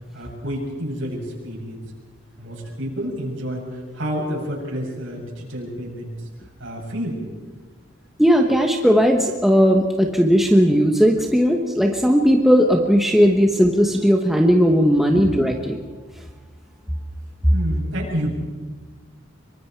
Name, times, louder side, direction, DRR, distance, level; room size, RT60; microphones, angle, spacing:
voice 1, 0.1-1.8 2.4-6.1 6.6-7.2 15.1-15.4 17.5-18.3, equal, 80° right, -2 dB, 7.6 m, -29 dB
voice 2, 8.2-15.8, equal, ahead, 2 dB, 1.2 m, -17 dB
25.0 x 23.5 x 4.7 m, 1.4 s
head